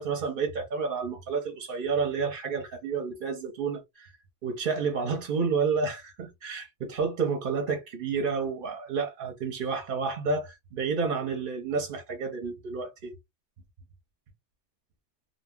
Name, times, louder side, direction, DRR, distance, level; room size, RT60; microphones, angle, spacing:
voice 1, 0.0-4.1 4.4-13.1, right 5 dB, 55° right, 0.6 m, -30 dB
2.2 x 2.0 x 3.4 m
omnidirectional pair, 1.2 m